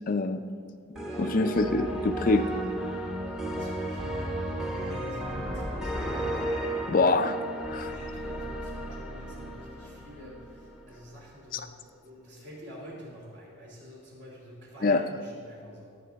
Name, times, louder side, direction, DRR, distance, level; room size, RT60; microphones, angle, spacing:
voice 1, 0.1-0.4 1.2-2.5 6.9-7.4 7.7-7.9 11.5-11.6 14.8-15.0, left 3 dB, 40° left, 9 dB, 0.4 m, -25 dB
voice 2, 0.9-1.6 3.2-6.1 7.7-15.9, equal, 55° right, -3 dB, 3.0 m, -47 dB
sound 1, 1.0-11.0, right 1 dB, ahead, 0.9 m, -34 dB
17.0 x 7.4 x 4.1 m, 2.2 s
head